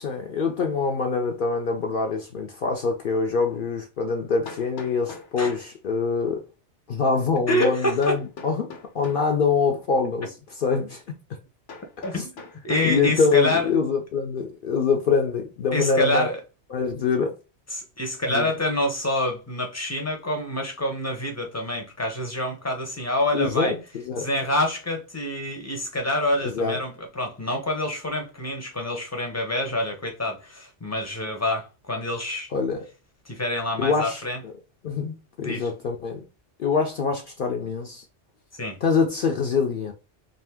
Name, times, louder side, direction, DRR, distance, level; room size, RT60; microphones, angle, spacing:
voice 1, 0.0-6.4 6.9-11.0 12.1-12.3 12.8-16.3 16.7-17.3 18.3-18.5 23.3-24.3 26.4-26.8 32.5-32.8 33.8-34.2 34.8-36.2 36.6-38.0 38.8-39.9, left 5 dB, 60° left, 0.6 m, -24 dB
Hammer, 4.5-5.7 8.0-9.3 11.7-13.0, left 4 dB, 90° left, 1.2 m, -42 dB
voice 2, 7.5-8.2 12.0-12.3 12.6-13.7 15.7-16.4 17.7-23.7 24.2-32.5 33.3-34.4 35.4-35.7 38.5-38.8, left 1 dB, 20° left, 0.5 m, -27 dB
2.6 x 2.5 x 3.4 m
omnidirectional pair, 1.2 m